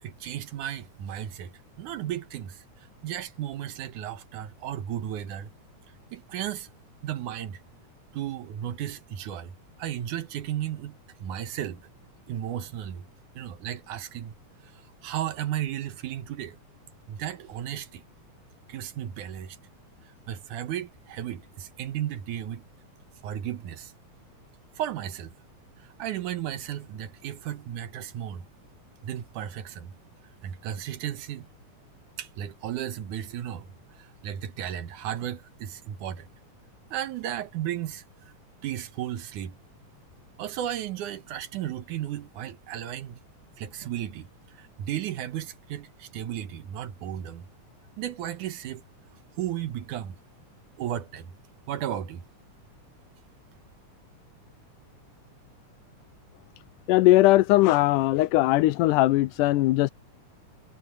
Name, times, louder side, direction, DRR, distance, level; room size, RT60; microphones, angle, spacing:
voice 1, 0.0-5.5 6.1-6.7 7.0-7.6 8.1-11.8 12.3-13.1 13.3-14.4 14.6-16.6 17.1-18.0 18.7-19.6 20.0-22.7 23.2-23.9 24.8-25.3 25.8-28.5 29.0-29.9 30.4-31.5 32.2-36.3 36.9-38.0 38.6-39.6 40.4-43.2 43.6-47.5 48.0-48.8 49.4-50.2 50.8-51.3 51.7-52.2, right 11 dB, 80° right, 2.7 m, -34 dB
voice 2, 56.9-59.9, left 17 dB, 90° left, 2.2 m, -20 dB
omnidirectional pair, 3.6 m